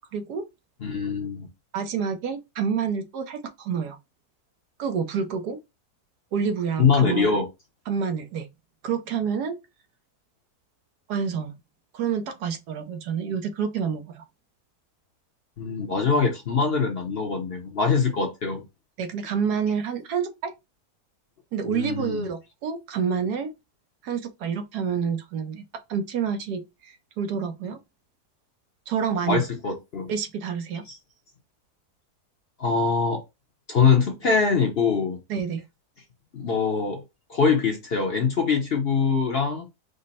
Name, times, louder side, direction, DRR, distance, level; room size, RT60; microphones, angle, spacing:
voice 1, 0.1-0.4 1.7-4.0 4.8-5.6 6.3-7.3 7.9-8.5 8.8-9.6 11.1-11.6 11.9-14.2 19.0-20.5 21.5-23.5 24.0-25.6 25.9-27.8 28.9-29.4 30.1-30.8 35.3-35.6, right 6 dB, 75° right, 1.3 m, -28 dB
voice 2, 0.8-1.5 6.8-7.5 15.6-18.6 21.7-22.3 29.3-30.1 30.9-31.0 32.6-33.2 33.7-35.2 36.3-37.0 37.3-39.7, left 5 dB, 45° left, 0.9 m, -23 dB
5.2 x 2.1 x 4.1 m
omnidirectional pair, 1.7 m